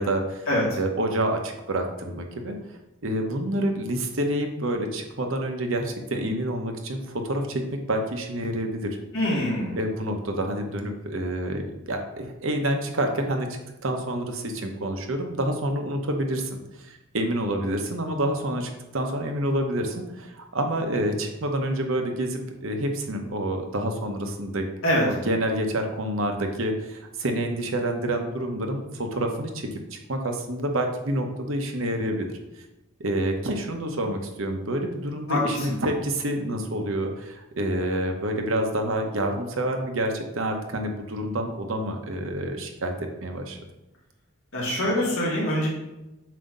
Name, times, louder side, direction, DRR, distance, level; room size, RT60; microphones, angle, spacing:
voice 1, 0.0-0.5 0.8-2.6 3.0-7.6 7.9-8.9 9.8-11.6 11.9-13.5 13.8-16.5 16.8-24.6 25.1-32.3 33.0-43.6, right 1 dB, 70° right, 4 dB, 0.9 m, -28 dB
voice 2, 9.1-9.8 24.8-25.1 35.3-35.6 44.5-45.7, left 1 dB, 75° left, -4 dB, 2.2 m, -24 dB
7.5 x 2.8 x 5.3 m, 0.98 s
head